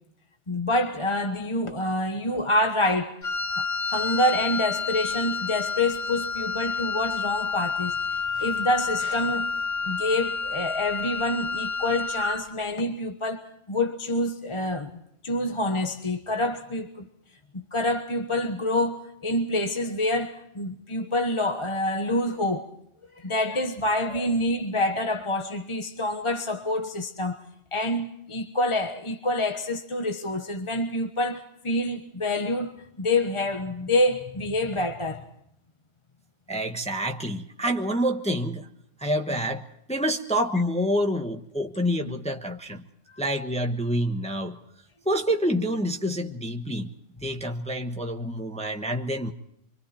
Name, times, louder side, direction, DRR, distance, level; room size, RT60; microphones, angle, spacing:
voice 1, 0.5-3.2 3.6-7.9 8.3-9.5 9.9-14.9 15.2-17.1 17.5-22.7 23.2-27.4 27.7-35.2 43.1-43.2, left 1 dB, 25° left, 1.2 m, -27 dB
Wind instrument woodwind instrument, 3.2-12.5, left 5 dB, 75° left, 3.8 m, -29 dB
voice 2, 36.5-38.7 39.0-42.8 43.2-44.6 45.0-46.9 47.2-49.3, equal, 5° left, 1.2 m, -27 dB
26.0 x 25.0 x 4.3 m
omnidirectional pair, 1.3 m